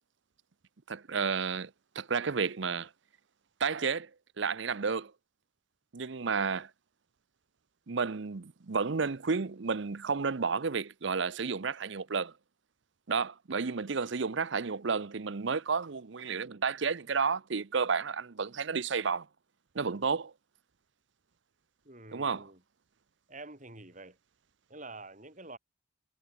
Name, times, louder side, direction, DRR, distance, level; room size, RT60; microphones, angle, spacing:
voice 1, 0.9-2.9 3.6-4.1 4.4-5.1 5.9-6.7 7.9-12.3 13.1-19.3 19.7-20.3 22.1-22.5, right 5 dB, 60° right, 0.7 m, -31 dB
voice 2, 21.8-22.6 23.3-24.2 24.7-25.6, right 2 dB, 40° right, 4.5 m, -47 dB
head